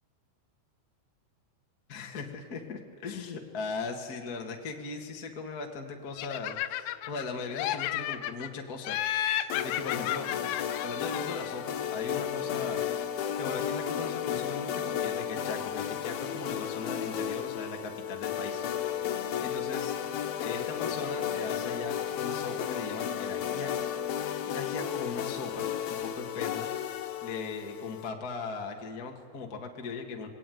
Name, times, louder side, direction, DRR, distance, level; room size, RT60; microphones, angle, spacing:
voice 1, 1.9-10.3 10.8-19.1 19.4-20.0 20.4-23.7 24.4-25.7 26.0-26.7 27.2-30.3, left 4 dB, 40° left, 2 dB, 1.4 m, -39 dB
Laughter, 6.2-7.3 7.6-8.5 8.9-11.6, left 12 dB, 85° left, 3.0 m, -33 dB
sound 1, 9.5-28.1, left 9 dB, 65° left, 2.9 m, -33 dB
26.5 x 20.5 x 9.4 m, 2.1 s
omnidirectional pair, 4.9 m